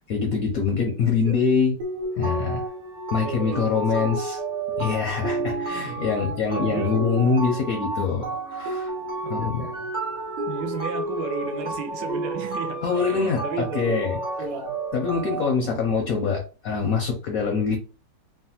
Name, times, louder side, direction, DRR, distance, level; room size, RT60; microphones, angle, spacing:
voice 1, 0.1-1.8 2.2-2.7 3.1-4.4 4.8-8.9 9.3-9.7 12.8-13.4 13.7-14.2 14.9-17.8, left 5 dB, 70° left, 0.8 m, -24 dB
voice 2, 1.0-1.4 3.2-3.6 4.0-4.1 5.6-6.1 6.6-7.0 9.2-9.9 10.5-14.1 14.4-14.8 15.6-15.8, right 6 dB, 75° right, 1.2 m, -34 dB
sound 1, 1.8-15.5, right 2 dB, 55° right, 0.5 m, -31 dB
3.1 x 2.2 x 2.8 m
omnidirectional pair, 2.0 m